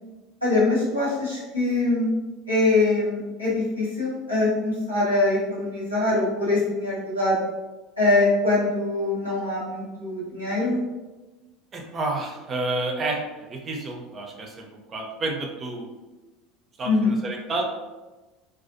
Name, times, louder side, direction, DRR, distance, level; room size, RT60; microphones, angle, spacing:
voice 1, 0.4-2.1 2.5-7.4 8.0-10.8 16.8-17.1, left 2 dB, 90° left, -9 dB, 0.9 m, -23 dB
voice 2, 11.7-15.9 16.8-17.6, right 2 dB, 35° right, 1 dB, 0.5 m, -30 dB
2.3 x 2.3 x 2.5 m, 1.2 s
figure-of-eight pair, 70°, 0 cm